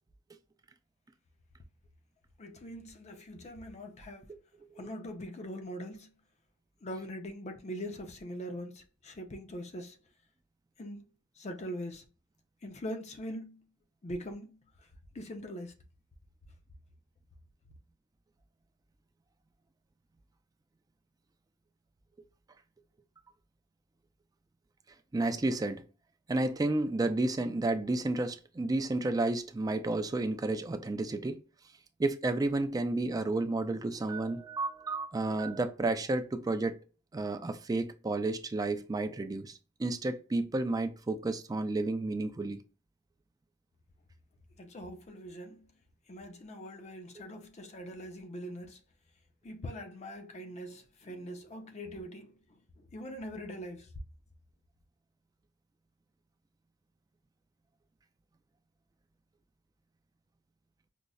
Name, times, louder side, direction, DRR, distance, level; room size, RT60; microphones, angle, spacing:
voice 1, 2.4-4.3 4.8-6.1 6.8-10.0 10.8-11.1 11.4-12.0 12.6-13.6 14.0-14.6 15.1-15.7 44.6-45.7 46.1-48.8 49.4-53.9, equal, 35° left, 0.5 m, -42 dB
voice 2, 25.1-25.8 26.3-31.4 32.0-36.8 37.1-42.6, right 2 dB, 20° right, 0.3 m, -31 dB
5.1 x 2.0 x 2.3 m
head